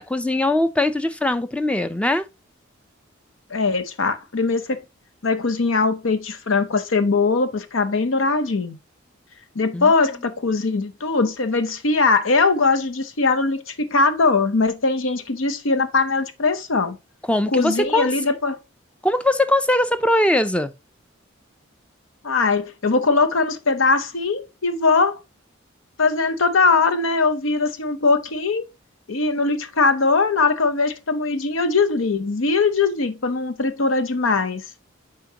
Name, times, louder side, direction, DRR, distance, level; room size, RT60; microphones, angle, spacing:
voice 1, 0.0-2.3 9.7-9.9 17.3-18.1 19.0-20.7, left 1 dB, 5° left, 0.5 m, -21 dB
voice 2, 3.5-4.8 5.2-8.8 9.5-17.0 17.5-18.6 22.2-25.2 26.0-28.7 29.1-34.6, left 3 dB, 90° left, 0.9 m, -21 dB
7.3 x 4.6 x 2.9 m
head